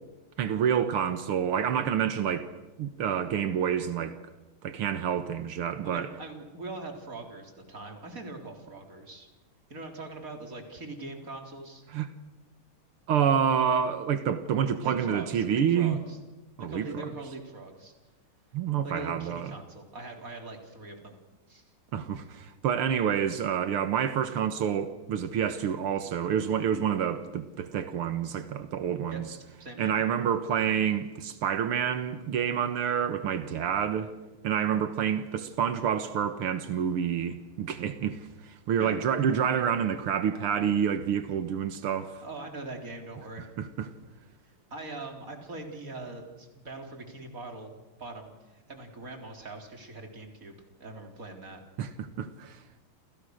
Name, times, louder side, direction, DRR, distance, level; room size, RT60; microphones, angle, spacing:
voice 1, 0.4-2.5 2.8-4.2 4.6-6.1 11.9-12.1 13.1-16.0 16.6-16.9 18.5-19.5 21.9-29.3 29.8-34.1 34.4-42.2 43.6-43.9 51.8-52.6, right 8 dB, 85° right, 2.2 m, -28 dB
voice 2, 5.8-9.3 9.7-11.8 14.8-16.2 16.6-17.9 18.8-21.2 21.5-21.7 29.1-29.2 29.6-30.0 38.8-39.0 42.2-43.5 44.4-47.7 48.0-51.6, right 2 dB, 40° right, 4.2 m, -42 dB
30.0 x 28.5 x 6.5 m
omnidirectional pair, 2.4 m